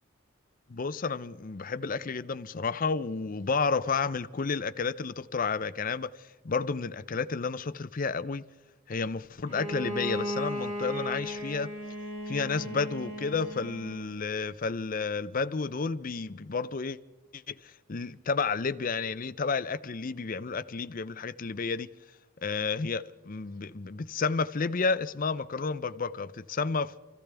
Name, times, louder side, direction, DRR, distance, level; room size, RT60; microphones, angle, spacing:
voice 1, 0.7-6.2 6.4-8.4 8.9-11.7 12.3-17.0 17.3-21.9 22.4-27.0, left 4 dB, 40° left, 0.5 m, -31 dB
Bowed string instrument, 9.5-14.2, equal, 85° right, 3.8 m, -36 dB
28.0 x 15.0 x 3.4 m
head